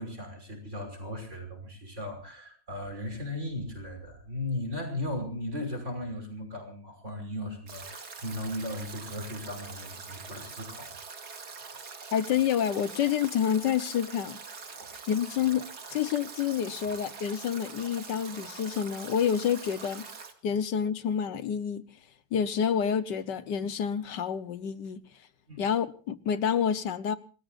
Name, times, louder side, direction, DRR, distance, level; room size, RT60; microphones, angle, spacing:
voice 1, 0.0-10.9 11.1-11.6 14.8-14.9 25.5-25.6, left 1 dB, 40° right, 6.2 m, -37 dB
Stream / Drip / Trickle dribble, 7.7-20.3, right 5 dB, 60° right, 2.6 m, -44 dB
voice 2, 12.1-14.4 15.1-15.6 15.9-20.0 20.4-21.8 22.3-25.0 25.6-27.2, left 8 dB, 75° left, 1.6 m, -28 dB
27.5 x 20.5 x 2.5 m
omnidirectional pair, 1.9 m